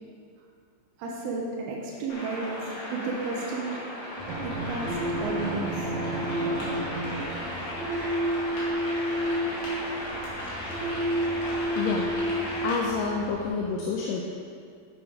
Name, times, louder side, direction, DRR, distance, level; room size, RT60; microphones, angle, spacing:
voice 1, 1.0-2.6 2.9-3.8 4.4-5.9, right 3 dB, 90° right, -3 dB, 2.9 m, -33 dB
sound 1, 2.1-12.7, left 1 dB, 40° left, 2.5 m, -36 dB
sound 2, 4.2-13.5, equal, 25° left, 1.6 m, -31 dB
Drum, 4.2-8.0, right 2 dB, 65° right, 1.5 m, -35 dB
voice 2, 11.8-12.1 12.6-14.2, left 4 dB, 75° left, -1 dB, 2.1 m, -28 dB
8.7 x 7.1 x 5.0 m, 2.3 s
omnidirectional pair, 4.3 m